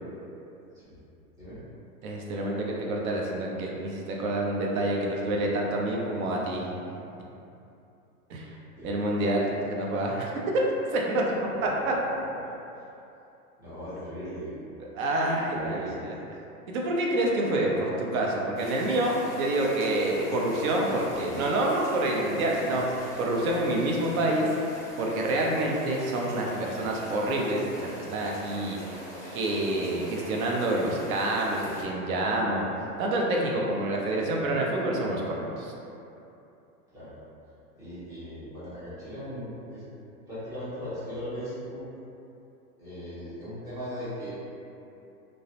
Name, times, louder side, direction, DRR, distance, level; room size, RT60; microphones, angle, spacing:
voice 1, 2.0-6.7 8.3-8.5 8.8-10.3 10.9-11.9 14.9-16.4 16.7-24.5 25.0-32.6 33.0-35.7, right 1 dB, 65° right, -2 dB, 0.6 m, -27 dB
voice 2, 11.5-12.5 13.6-14.5 15.5-16.1 17.7-18.0 36.9-37.1 37.8-39.8 40.3-41.8 42.8-44.3, equal, 10° right, -13 dB, 0.3 m, -38 dB
sound 1, 18.5-31.8, equal, 5° left, 0.7 m, -42 dB
2.2 x 2.0 x 2.8 m, 2.8 s
hypercardioid pair, 125°, 45 cm